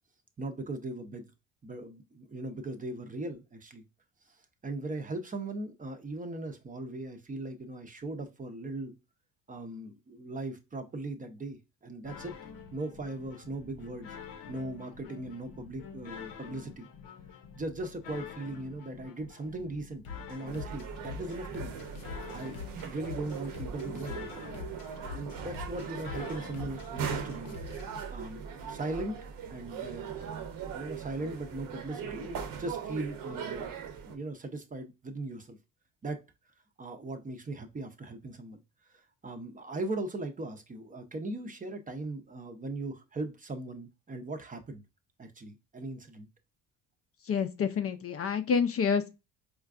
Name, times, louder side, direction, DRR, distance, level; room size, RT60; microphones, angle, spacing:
voice 1, 0.4-1.3 1.6-3.8 4.3-4.4 4.6-9.0 9.5-12.3 12.7-14.2 14.5-16.9 17.5-21.7 22.3-24.4 25.1-27.6 28.1-29.2 29.5-33.7 34.0-35.6 36.0-36.2 36.8-38.6 38.9-44.8 45.2-46.3, right 2 dB, 25° right, 0.6 m, -39 dB
sound 1, 12.0-28.0, left 6 dB, 70° left, 0.8 m, -45 dB
sound 2, 20.5-34.1, right 7 dB, 65° right, 0.8 m, -40 dB
voice 2, 47.2-49.1, left 6 dB, 40° left, 0.5 m, -28 dB
4.4 x 2.4 x 2.4 m
supercardioid pair, 85°, 36 cm